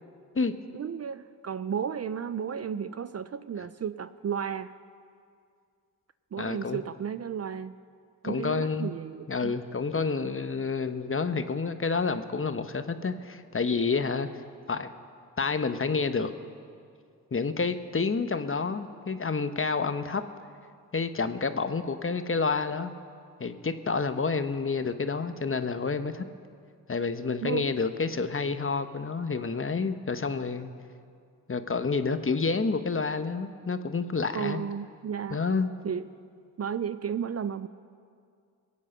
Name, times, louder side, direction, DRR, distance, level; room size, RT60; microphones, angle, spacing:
voice 1, 0.7-4.7 6.3-7.7 8.2-9.5 27.4-27.6 34.3-35.4 35.8-36.1 36.6-37.7, right 7 dB, 40° right, 14 dB, 0.5 m, -33 dB
voice 2, 6.4-6.8 8.2-8.9 9.3-14.3 14.7-14.9 15.4-16.3 17.3-20.2 20.9-22.9 23.4-26.2 26.9-30.7 31.5-34.6 35.3-35.7, left 4 dB, 30° left, 10 dB, 1.0 m, -29 dB
22.0 x 8.5 x 5.6 m, 2.3 s
supercardioid pair, 45°, 41 cm